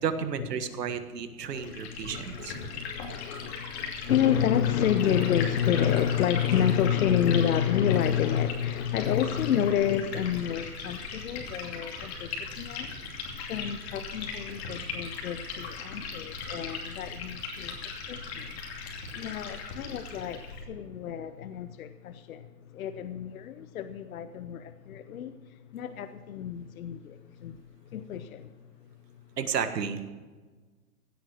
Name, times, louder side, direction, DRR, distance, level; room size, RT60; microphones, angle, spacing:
voice 1, 0.0-2.5 29.4-30.0, right 7 dB, 85° right, 1.7 m, -32 dB
Liquid, 1.5-20.6, left 4 dB, 40° left, 2.7 m, -39 dB
voice 2, 2.1-12.9 13.4-25.4 25.7-27.6 27.9-28.5, left 9 dB, 60° left, 0.8 m, -29 dB
16.5 x 8.2 x 6.4 m
hypercardioid pair, 160°, 47 cm